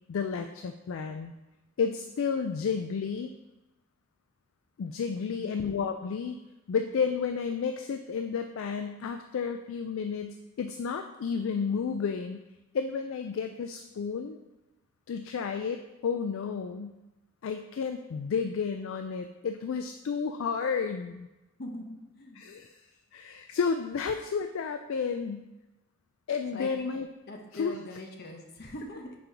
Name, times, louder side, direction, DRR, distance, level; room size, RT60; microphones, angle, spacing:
voice 1, 0.1-1.4 1.8-3.3 4.8-6.4 6.7-12.4 12.7-14.4 15.1-16.9 17.4-21.3 22.4-22.8 23.1-25.4 26.3-27.1 27.5-27.8, left 6 dB, 65° left, 7 dB, 0.3 m, -31 dB
voice 2, 5.2-5.6 21.6-22.4 26.5-26.9 27.3-29.1, left 1 dB, 50° left, 1 dB, 1.0 m, -42 dB
5.3 x 4.5 x 5.0 m, 1.0 s
head